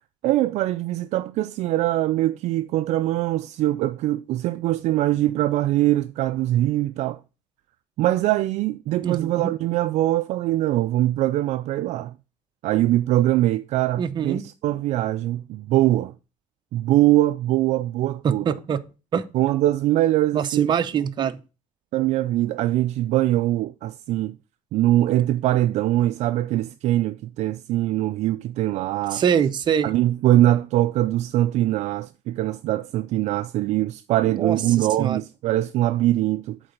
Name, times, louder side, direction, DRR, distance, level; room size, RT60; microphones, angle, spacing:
voice 1, 0.2-7.2 8.0-12.1 12.6-16.1 16.7-18.5 19.3-20.7 21.9-24.4 24.7-29.2 29.8-36.6, right 14 dB, 55° right, 0.4 m, -22 dB
voice 2, 9.0-9.5 14.0-14.4 18.2-18.8 19.1-19.2 20.3-21.4 29.1-29.9 34.3-35.2, right 8 dB, 35° right, 0.7 m, -24 dB
8.8 x 3.9 x 6.5 m
cardioid pair, 150°, 14 cm